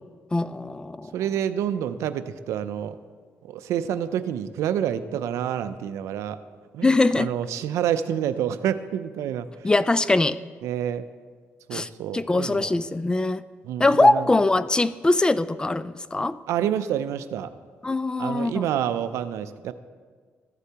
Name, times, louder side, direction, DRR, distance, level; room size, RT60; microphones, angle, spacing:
voice 1, 0.3-1.1 6.8-7.3 9.6-10.4 11.7-13.4 13.8-16.4 17.8-18.7, left 2 dB, 15° left, 16 dB, 0.3 m, -22 dB
voice 2, 1.1-3.0 3.4-6.4 6.7-9.7 10.6-11.0 11.7-12.7 13.6-14.3 16.5-17.5 18.2-19.7, right 9 dB, 85° right, 12 dB, 0.4 m, -28 dB
14.5 x 8.0 x 2.9 m, 1.5 s
cardioid pair, 90°, 5 cm